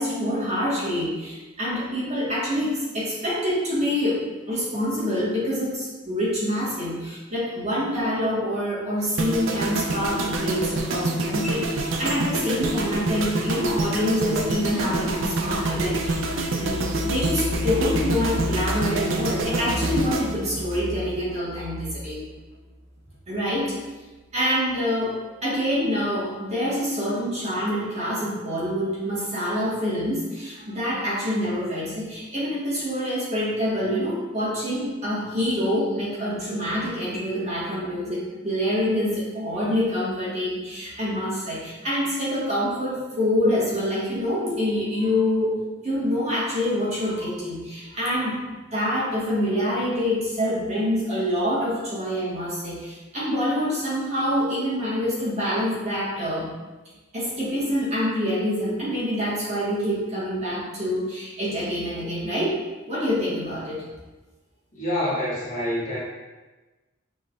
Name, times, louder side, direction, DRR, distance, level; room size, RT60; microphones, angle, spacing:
voice 1, 0.0-16.2 16.5-22.2 23.3-23.7 24.3-48.3 48.7-56.5 57.1-62.6 62.9-63.8, equal, 35° right, -8 dB, 1.5 m, -26 dB
sound 1, 9.2-21.4 21.6-21.9, right 2 dB, 75° right, 0.5 m, -27 dB
voice 2, 64.7-66.0, left 1 dB, 40° left, -7 dB, 1.2 m, -26 dB
5.9 x 3.3 x 2.4 m, 1.2 s
head